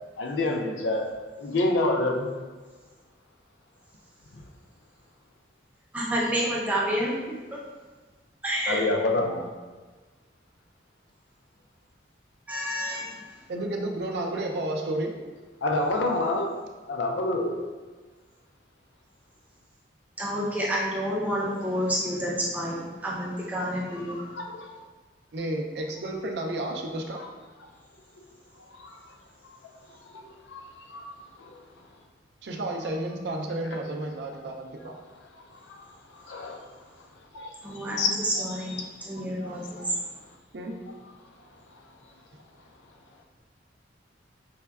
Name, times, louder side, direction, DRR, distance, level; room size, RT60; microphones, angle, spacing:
voice 1, 0.2-1.1 1.4-2.3 8.7-9.4 15.6-16.5 16.9-17.5 24.1-24.8 28.8-28.9 30.1-30.2 30.5-30.6 30.9-31.0 36.3-36.6 37.3-37.5 37.9-38.1 39.4-39.5 39.8-39.9, left 2 dB, 75° left, 3 dB, 0.4 m, -27 dB
voice 2, 5.9-7.2 8.4-8.9 12.5-13.2 20.2-24.2 37.6-39.8, equal, 10° right, -5 dB, 0.5 m, -29 dB
voice 3, 13.5-15.1 25.3-27.2 32.4-34.9 40.5-40.8, right 1 dB, 65° right, 2 dB, 0.4 m, -31 dB
5.4 x 2.2 x 2.3 m, 1.3 s
head